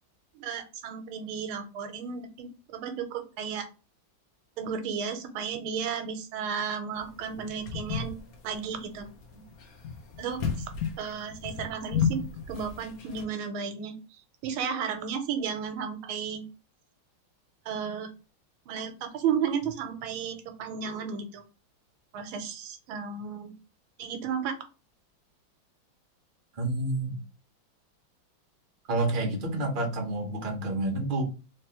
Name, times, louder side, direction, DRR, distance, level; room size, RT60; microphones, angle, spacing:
voice 1, 0.3-3.7 4.6-8.2 8.4-9.4 10.2-10.5 11.0-14.0 14.4-16.5 17.7-18.1 18.7-21.4 22.1-23.5 24.0-24.6, right 7 dB, 90° right, 7 dB, 1.5 m, -33 dB
sound 1, 7.0-13.2, left 7 dB, 60° left, 1.0 m, -33 dB
voice 2, 26.6-27.2 28.9-31.2, right 2 dB, 40° right, 1 dB, 0.8 m, -29 dB
3.3 x 3.3 x 2.8 m, 0.33 s
omnidirectional pair, 2.2 m